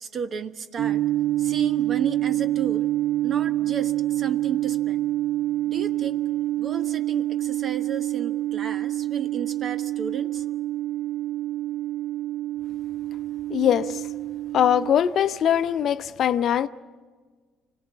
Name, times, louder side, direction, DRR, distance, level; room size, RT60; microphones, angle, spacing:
voice 1, 0.0-1.0 1.4-2.9 3.2-5.0 5.7-6.2 6.6-10.4, right 6 dB, 50° right, 10 dB, 1.1 m, -33 dB
sound 1, 0.8-14.9, right 14 dB, 65° right, 0.6 m, -27 dB
voice 2, 13.5-14.0 14.5-16.7, left 9 dB, 55° left, 12 dB, 0.6 m, -21 dB
26.0 x 17.5 x 7.4 m, 1.4 s
hypercardioid pair, 60°, 0 cm